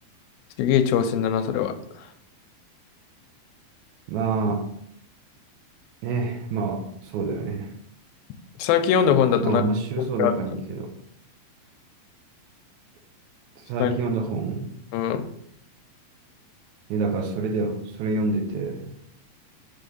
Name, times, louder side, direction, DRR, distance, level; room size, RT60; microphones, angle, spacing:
voice 1, 0.6-2.1 8.6-9.6 10.0-10.3 13.8-13.9 14.9-15.3, left 8 dB, 90° left, 8 dB, 2.4 m, -22 dB
voice 2, 4.1-4.7 6.0-7.7 9.4-10.9 13.6-14.8 16.9-18.9, right 3 dB, 75° right, 3 dB, 1.8 m, -27 dB
5.8 x 3.4 x 5.3 m, 0.71 s
omnidirectional pair, 4.1 m